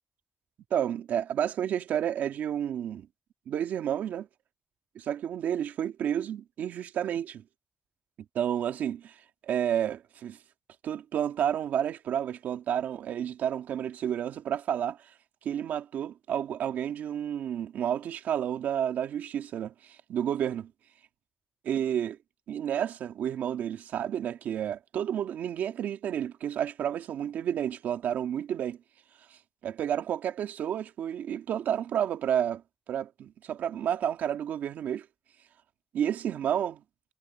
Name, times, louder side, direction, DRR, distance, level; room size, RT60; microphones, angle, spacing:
voice 1, 0.7-3.1 3.5-4.3 5.0-7.4 8.3-10.4 10.8-15.1 15.4-20.7 21.6-22.2 22.5-28.8 29.3-32.6 32.9-35.1 35.9-36.8, right 9 dB, 85° right, 2.0 m, -31 dB
supercardioid pair, 40°, 3 cm